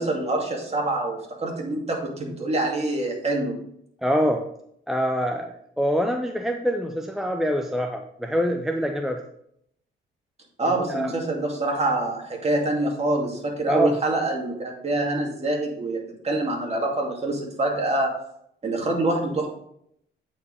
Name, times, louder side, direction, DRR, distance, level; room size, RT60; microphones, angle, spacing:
voice 1, 0.0-3.6 10.6-18.1 18.6-19.5, right 2 dB, 30° right, 0 dB, 2.5 m, -25 dB
voice 2, 4.0-4.4 4.9-9.2 10.9-11.1 13.7-13.9, equal, ahead, 4 dB, 0.6 m, -25 dB
8.6 x 4.8 x 5.0 m, 0.72 s
cardioid pair, 90°, 20 cm